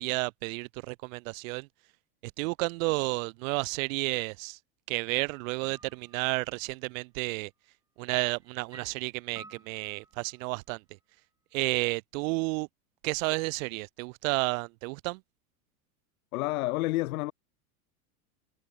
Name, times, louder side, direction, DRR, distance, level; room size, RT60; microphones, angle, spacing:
voice 1, 0.0-1.7 2.4-4.6 4.9-7.5 8.0-10.8 11.5-12.7 13.0-15.2, right 26 dB, 60° right, 2.1 m, -31 dB
sound 1, 5.6-6.4 8.1-10.5 11.6-11.7, right 2 dB, 10° right, 4.9 m, -53 dB
voice 2, 16.3-17.3, left 19 dB, 70° left, 2.1 m, -29 dB
hypercardioid pair, 115°, 44 cm